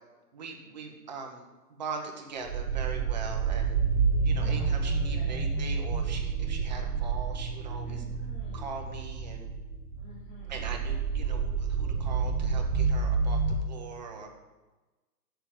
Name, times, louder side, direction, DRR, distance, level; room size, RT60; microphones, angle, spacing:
voice 1, 0.3-3.8 4.2-8.0 8.5-9.5 10.5-13.4 13.6-14.3, right 4 dB, 25° right, 1 dB, 0.9 m, -41 dB
sound 1, 2.4-13.6, right 5 dB, 65° right, 1.7 m, -29 dB
voice 2, 4.3-5.5 7.8-8.8 10.0-10.5, left 1 dB, 15° left, -12 dB, 2.9 m, -49 dB
7.7 x 6.9 x 7.3 m, 1.2 s
hypercardioid pair, 175°, 48 cm